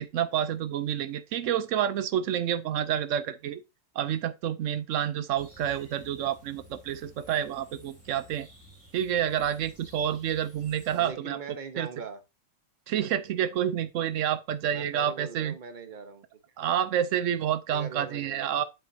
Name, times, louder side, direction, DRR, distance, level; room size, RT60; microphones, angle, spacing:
voice 1, 0.0-3.6 3.9-8.5 8.9-11.4 11.8-11.9 12.9-15.5 16.6-18.6, right 10 dB, 75° right, 0.9 m, -29 dB
sound 1, 5.4-11.1, left 1 dB, 10° right, 2.8 m, -53 dB
voice 2, 10.9-12.2 14.7-16.3 17.7-18.6, right 5 dB, 40° right, 1.1 m, -41 dB
7.5 x 7.5 x 2.7 m
omnidirectional pair, 1.4 m